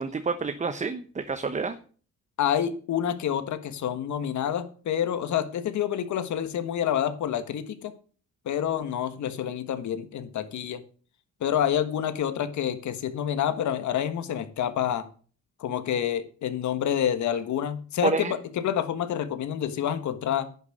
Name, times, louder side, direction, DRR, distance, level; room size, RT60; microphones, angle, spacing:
voice 1, 0.0-1.8 18.0-18.3, right 4 dB, 25° right, 9 dB, 0.9 m, -28 dB
voice 2, 2.4-7.9 8.4-10.8 11.4-15.1 15.6-18.3 18.6-20.5, left 9 dB, 70° left, 10 dB, 1.4 m, -28 dB
10.5 x 7.2 x 6.5 m, 0.42 s
cardioid pair, 90°, 30 cm